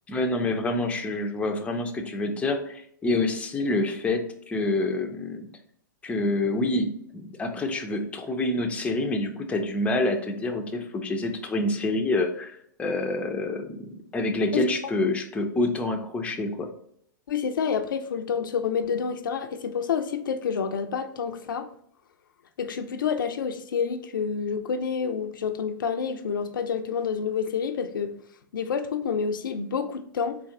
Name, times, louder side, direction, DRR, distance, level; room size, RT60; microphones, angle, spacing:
voice 1, 0.1-5.5 6.0-16.7, left 2 dB, 10° left, 0.5 m, -27 dB
voice 2, 17.3-21.7 22.6-28.2 28.5-30.4, left 6 dB, 85° left, 0.4 m, -28 dB
4.2 x 2.5 x 3.7 m
hypercardioid pair, 120°, 11 cm